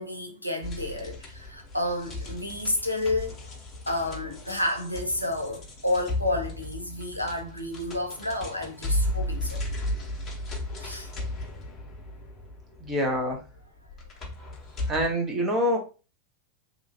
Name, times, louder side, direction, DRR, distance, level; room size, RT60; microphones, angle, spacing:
voice 1, 0.0-3.6 3.9-9.6 10.8-11.1, left 1 dB, 90° left, 0.5 m, -30 dB
sound 1, 0.6-15.1, left 1 dB, 25° left, 0.9 m, -35 dB
voice 2, 12.8-13.4 14.9-15.8, equal, 20° right, 0.9 m, -25 dB
2.9 x 2.4 x 2.7 m
figure-of-eight pair, 90°, 0 cm